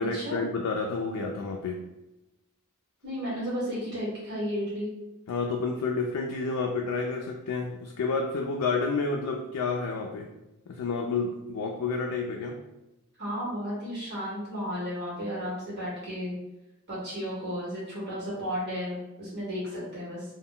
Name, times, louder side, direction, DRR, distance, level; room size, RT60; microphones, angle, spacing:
voice 1, 0.0-1.8 5.3-10.3 10.7-12.6, left 4 dB, 85° left, 1 dB, 0.3 m, -30 dB
voice 2, 3.0-4.9 13.2-16.3 16.9-20.2, equal, 50° right, -7 dB, 1.0 m, -33 dB
2.1 x 2.0 x 3.7 m, 0.99 s
head